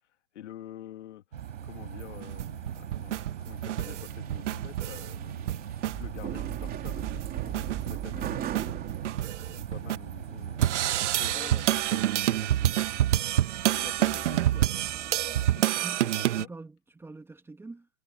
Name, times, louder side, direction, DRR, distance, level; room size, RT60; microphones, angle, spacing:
voice 1, 0.3-1.2 1.6-8.8 9.5-10.8 11.1-15.8 16.4-16.5, left 12 dB, 65° left, 2.9 m, -48 dB
sound 1, 1.3-11.4, right 8 dB, 85° right, 4.2 m, -40 dB
sound 2, 1.4-15.5, right 11 dB, 25° right, 3.5 m, -41 dB
sound 3, 2.2-5.1 5.5-6.0 6.3-6.4 6.7-10.0 10.6-16.5, right 12 dB, 70° right, 1.2 m, -28 dB
voice 2, 15.8-17.9, right 3 dB, 5° right, 1.7 m, -46 dB
hypercardioid pair, 135°, 37 cm